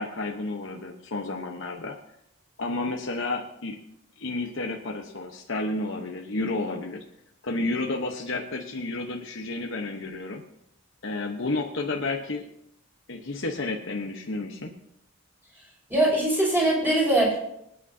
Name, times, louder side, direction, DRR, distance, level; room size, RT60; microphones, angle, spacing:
voice 1, 0.0-2.0 2.6-3.8 4.2-7.0 7.4-10.4 11.0-12.5 13.1-14.7, left 2 dB, 60° left, 1 dB, 1.0 m, -31 dB
voice 2, 15.9-17.4, right 1 dB, 10° right, -5 dB, 5.5 m, -22 dB
25.0 x 9.1 x 2.7 m, 0.78 s
head